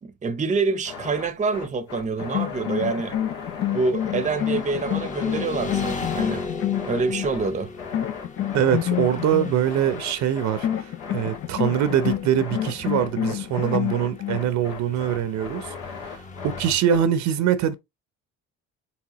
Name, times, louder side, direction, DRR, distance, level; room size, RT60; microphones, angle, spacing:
voice 1, 0.0-3.2 3.7-6.5 6.8-7.7, right 4 dB, 25° right, 0.7 m, -26 dB
sound 1, 0.8-17.1, left 5 dB, 90° left, 2.1 m, -38 dB
sound 2, 2.2-7.4 7.9-9.5 10.6-14.5, left 11 dB, 50° left, 0.6 m, -28 dB
Motorcycle / Traffic noise roadway noise, 3.7-16.8, left 3 dB, 25° left, 0.8 m, -38 dB
voice 2, 8.5-16.2 16.4-17.7, right 9 dB, 65° right, 0.7 m, -23 dB
4.9 x 3.2 x 3.0 m
supercardioid pair, 85°, 30 cm